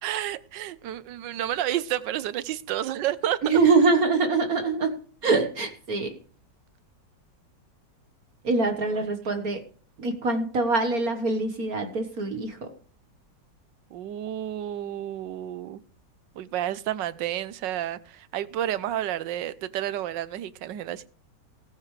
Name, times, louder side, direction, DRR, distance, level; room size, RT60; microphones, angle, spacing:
voice 1, 0.0-3.6 8.9-9.1 13.9-15.8 16.4-21.1, right 12 dB, 80° right, 1.4 m, -30 dB
voice 2, 3.4-6.1 8.4-9.6 10.0-12.7, right 3 dB, 55° right, 1.7 m, -24 dB
19.0 x 9.0 x 3.3 m
omnidirectional pair, 2.0 m